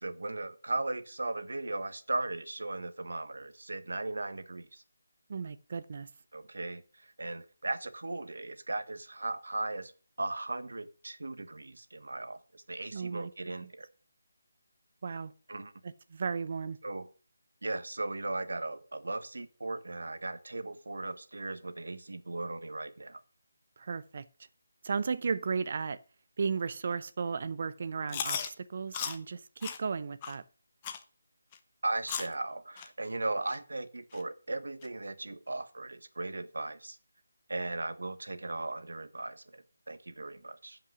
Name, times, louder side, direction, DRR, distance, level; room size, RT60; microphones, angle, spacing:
voice 1, 0.0-4.8 6.3-9.9 10.2-13.9 15.5-15.7 16.8-17.1 17.6-23.2 31.8-37.0 37.5-40.8, right 2 dB, 85° right, 1.2 m, -37 dB
voice 2, 5.3-6.1 12.9-13.3 13.6-13.7 15.0-15.3 15.8-16.8 23.8-24.3 24.8-26.0 26.4-30.4, right 5 dB, 35° right, 0.6 m, -35 dB
Chewing mastication, 28.1-28.5 28.9-29.2 29.6-29.8 30.2-30.3 30.8-31.0 31.5-31.6 32.1-32.3 32.8-32.9 33.5-33.6 34.1-34.2 34.8-34.9, left 8 dB, 15° left, 0.7 m, -36 dB
10.5 x 5.7 x 6.1 m
figure-of-eight pair, 175°, 0 cm